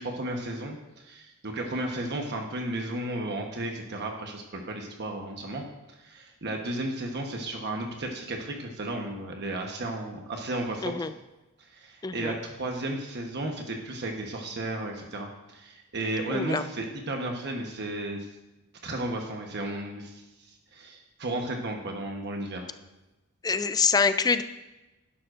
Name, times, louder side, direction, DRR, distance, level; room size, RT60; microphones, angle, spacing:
voice 1, 0.0-5.6 6.0-10.9 11.6-18.2 18.8-20.2 20.7-22.6, right 1 dB, 50° right, 2 dB, 1.1 m, -34 dB
voice 2, 12.0-12.4 16.3-16.6 23.4-24.4, left 5 dB, 15° left, 11 dB, 0.4 m, -25 dB
11.0 x 11.0 x 2.6 m, 1.0 s
head